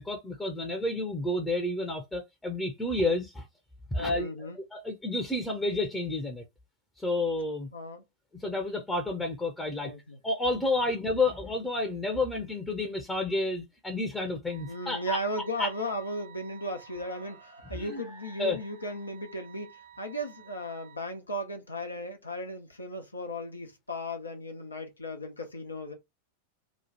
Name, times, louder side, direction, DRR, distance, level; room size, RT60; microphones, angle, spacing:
voice 1, 0.0-3.5 3.9-6.4 7.0-7.7 8.3-9.9 10.2-15.2 15.6-15.7 17.7-18.0 18.4-18.6, left 2 dB, 10° left, 0.8 m, -30 dB
voice 2, 4.0-4.6 7.7-8.0 9.8-10.2 14.6-25.9, equal, 80° left, 0.9 m, -36 dB
sound 1, 14.5-21.0, right 7 dB, 55° right, 1.4 m, -52 dB
3.0 x 2.3 x 4.1 m
figure-of-eight pair, 90°, 0 cm